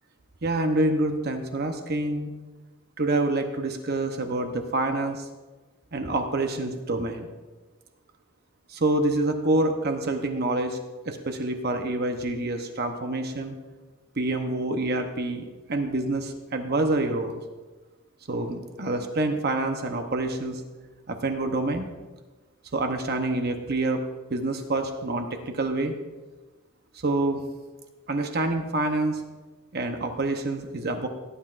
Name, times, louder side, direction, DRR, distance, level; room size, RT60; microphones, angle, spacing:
voice 1, 0.4-2.3 3.0-5.3 5.9-7.3 8.7-10.8 11.1-13.5 14.2-17.4 18.3-20.6 21.1-21.9 22.7-24.0 24.3-25.9 27.0-27.4 28.1-29.2 29.7-31.1, right 2 dB, 45° right, 5 dB, 0.8 m, -27 dB
18.0 x 10.0 x 2.5 m, 1.2 s
head